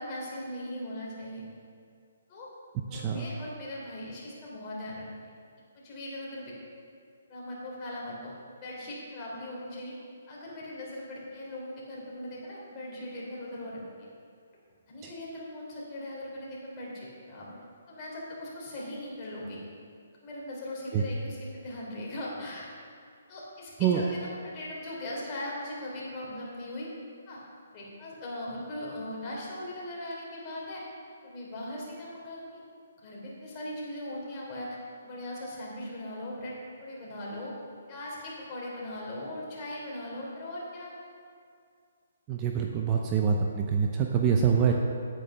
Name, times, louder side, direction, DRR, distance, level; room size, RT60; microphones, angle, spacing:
voice 1, 0.0-1.4 2.3-2.5 2.9-5.1 5.7-6.5 7.3-9.9 10.3-14.1 14.9-17.5 17.9-19.6 20.2-22.7 23.3-26.9 27.3-27.4 27.7-30.8 31.2-32.6 33.0-34.8 35.0-36.5 36.8-37.5 37.9-40.9, left 1 dB, 25° left, -5 dB, 3.2 m, -39 dB
voice 2, 2.9-3.3 15.0-15.1 20.9-21.0 23.8-24.0 42.3-44.7, right 7 dB, 25° right, 2 dB, 0.6 m, -25 dB
9.1 x 8.8 x 5.7 m, 2.3 s
hypercardioid pair, 160°, 0 cm